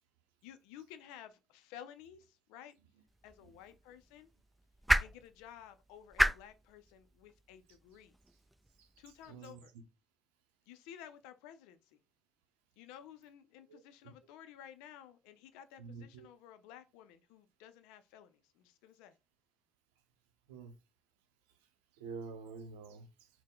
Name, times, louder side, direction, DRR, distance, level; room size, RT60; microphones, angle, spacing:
voice 1, 0.4-2.7 3.2-4.3 5.0-8.1 9.0-9.7 10.7-12.0 12.8-19.2, left 10 dB, 80° left, 0.4 m, -54 dB
sound 1, 3.1-9.3, right 1 dB, 5° right, 0.5 m, -36 dB
voice 2, 9.2-9.6 13.7-13.8 15.8-16.3 20.5-20.7 22.0-23.3, right 5 dB, 85° right, 0.6 m, -47 dB
4.2 x 2.1 x 3.6 m
hypercardioid pair, 50°, 0 cm